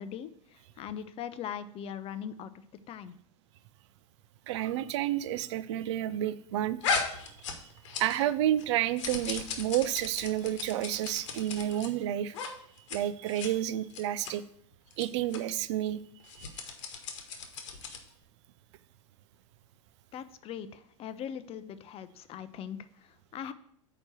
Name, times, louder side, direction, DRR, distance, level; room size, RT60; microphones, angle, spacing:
voice 1, 0.0-3.1 20.1-23.5, left 8 dB, 35° left, 13 dB, 0.5 m, -41 dB
voice 2, 4.5-7.1 8.0-12.3 12.9-14.4 15.0-16.0 16.4-16.6, right 12 dB, 60° right, 14 dB, 0.4 m, -30 dB
sound 1, 6.8-8.3 8.6-11.9 12.3-12.5 12.8-13.0 13.3-13.5 13.9-14.3 14.9-15.0 15.3-15.4 16.2-18.1, left 5 dB, 65° left, 1.1 m, -36 dB
8.7 x 2.9 x 6.3 m, 0.67 s
hypercardioid pair, 85°, 16 cm